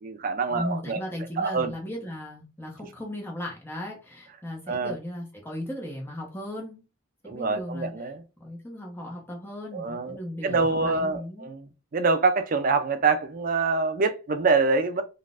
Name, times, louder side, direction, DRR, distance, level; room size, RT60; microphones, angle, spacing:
voice 1, 0.0-1.0 1.4-1.7 4.7-5.0 7.3-8.2 9.7-10.2 10.4-11.7 11.9-15.0, right 4 dB, 40° right, 0.4 m, -25 dB
voice 2, 0.5-6.8 7.2-7.9 8.4-11.5, left 1 dB, 10° left, 0.8 m, -36 dB
3.9 x 2.5 x 2.4 m
head